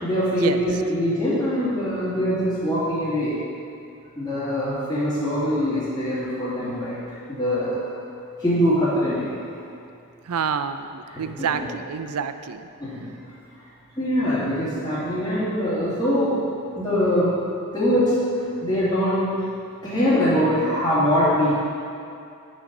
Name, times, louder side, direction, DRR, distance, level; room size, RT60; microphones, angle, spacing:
voice 1, 0.0-3.4 4.2-7.0 7.3-7.9 8.4-9.4 11.1-11.7 12.8-13.1 14.0-16.4 16.7-17.3 17.7-18.1 18.6-19.4 19.8-21.5, equal, 15° left, -16 dB, 2.5 m, -23 dB
voice 2, 10.3-12.7, right 6 dB, 85° right, 10 dB, 0.5 m, -27 dB
9.3 x 6.4 x 5.3 m, 2.5 s
head